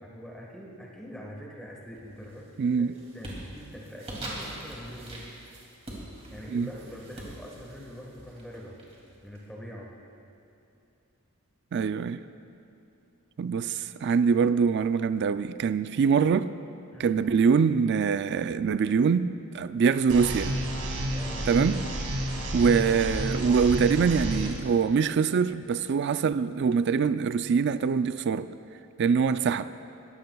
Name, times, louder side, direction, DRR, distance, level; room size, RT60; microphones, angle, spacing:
voice 1, 0.0-5.3 6.3-8.8 9.2-9.9 16.9-17.2 21.1-21.5, equal, 5° left, 1.5 m, -44 dB
sound 1, 1.9-2.4 2.7-9.4, right 1 dB, 30° right, 2.5 m, -43 dB
voice 2, 2.6-2.9 6.5-6.7 11.7-12.2 13.4-16.5 17.0-20.5 21.4-21.8 22.5-28.5 29.0-29.7, right 6 dB, 50° right, 0.3 m, -24 dB
sound 2, 20.1-24.5, right 1 dB, 90° right, 2.1 m, -31 dB
21.5 x 14.5 x 2.3 m
head